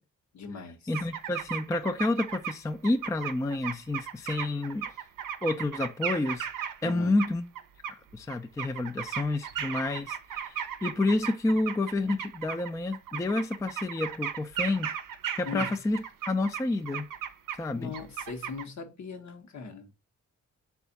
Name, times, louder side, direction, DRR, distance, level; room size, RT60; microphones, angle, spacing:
voice 1, 0.3-0.9 6.8-7.1 15.4-15.7 17.7-19.9, left 5 dB, 60° left, 1.0 m, -40 dB
voice 2, 0.9-4.9 5.4-6.5 6.8-7.4 7.9-14.9 15.4-17.1 17.6-17.9, left 2 dB, 10° left, 0.3 m, -29 dB
sound 1, 0.9-2.6 2.8-6.9 7.2-7.9 8.3-17.6 17.9-18.6, right 9 dB, 85° right, 0.5 m, -35 dB
3.4 x 2.4 x 3.9 m
cardioid pair, 65°, 32 cm